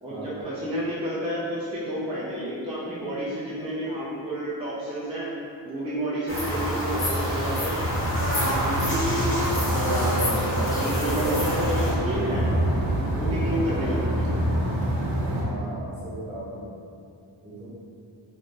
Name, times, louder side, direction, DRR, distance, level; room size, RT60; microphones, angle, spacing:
voice 1, 0.0-5.3 5.6-7.7 8.3-9.3 9.7-12.4 13.1-14.3, right 1 dB, 15° right, -9 dB, 0.4 m, -30 dB
sound 1, 6.3-11.9, equal, 25° left, 0.8 m, -26 dB
sound 2, 7.7-15.4, equal, 70° right, 0.7 m, -27 dB
voice 2, 15.5-16.7 17.4-17.7, right 1 dB, 45° right, -10 dB, 1.2 m, -38 dB
2.6 x 2.5 x 3.2 m, 2.5 s
wide cardioid pair, 130°, 47 cm